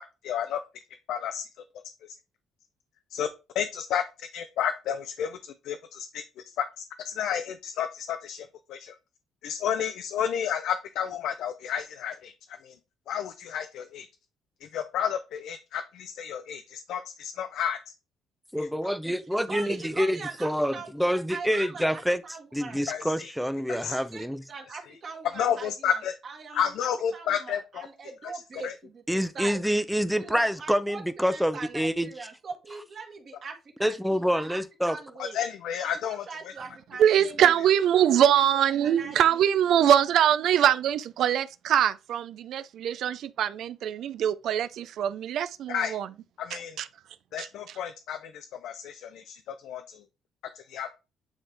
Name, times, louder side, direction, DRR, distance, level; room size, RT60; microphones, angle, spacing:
voice 1, 0.2-0.6 1.1-1.5 3.1-3.3 3.5-6.7 7.0-9.0 9.4-12.3 12.6-12.8 13.1-14.1 14.6-17.8 18.6-18.7 22.9-23.3 23.7-24.0 25.4-26.1 26.5-27.9 28.6-28.7 35.2-36.2 45.7-46.0 46.4-46.8 47.3-49.8 50.7-50.9, left 9 dB, 70° left, 0.6 m, -31 dB
voice 2, 18.5-22.2 22.5-24.4 29.1-32.1 33.8-35.0, equal, ahead, 0.4 m, -27 dB
voice 3, 19.5-22.9 23.7-26.7 27.1-29.6 30.2-35.4 35.8-37.6 38.1-39.4, right 4 dB, 40° right, 1.6 m, -42 dB
voice 4, 37.0-46.1 46.8-46.9 47.4-47.5, right 10 dB, 65° right, 0.4 m, -23 dB
9.1 x 3.7 x 3.3 m
cardioid pair, 150°, 0 cm